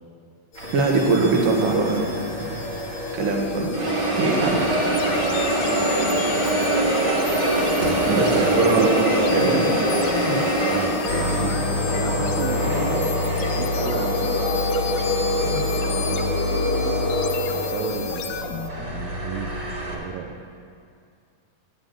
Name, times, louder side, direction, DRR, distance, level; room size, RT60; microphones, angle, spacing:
sound 1, 0.5-18.4, left 3 dB, 50° left, 1.6 m, -32 dB
sound 2, 0.6-3.3 3.7-19.9, right 1 dB, 35° right, 2.1 m, -24 dB
voice 1, 0.7-2.1 2.4-2.6 3.1-4.6 8.1-8.9 9.2-9.7 15.4-15.6, right 3 dB, 65° right, 0 dB, 2.9 m, -22 dB
sound 3, 4.9-18.7, left 10 dB, 85° left, 2.6 m, -33 dB
voice 2, 7.8-8.8 10.3-14.3 15.7-16.3 17.5-20.4, right 7 dB, 80° right, 3 dB, 2.1 m, -33 dB
9.5 x 8.0 x 8.9 m, 2.3 s
omnidirectional pair, 4.6 m